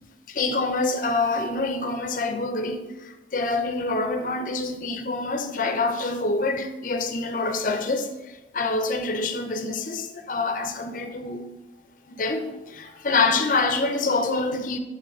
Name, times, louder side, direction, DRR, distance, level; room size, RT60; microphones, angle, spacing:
voice 1, 0.3-11.4 12.1-14.8, left 3 dB, 45° left, 0.5 m, -26 dB
6.4 x 3.9 x 4.3 m
head